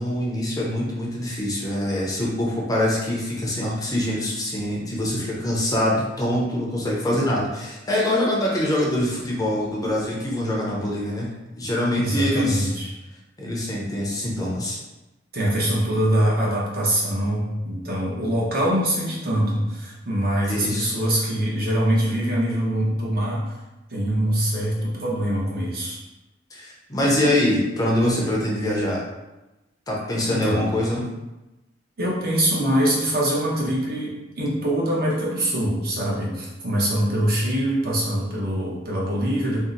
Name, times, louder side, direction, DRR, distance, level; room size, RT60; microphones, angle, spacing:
voice 1, 0.0-11.3 11.5-12.7 13.4-14.8 20.5-21.0 26.5-29.0 29.9-31.1, left 1 dB, 20° left, -3 dB, 0.5 m, -24 dB
voice 2, 12.0-12.9 15.3-23.5 23.9-26.0 30.3-30.6 32.0-39.6, right 1 dB, 55° right, -4 dB, 0.8 m, -23 dB
2.7 x 2.0 x 3.7 m, 1.0 s
head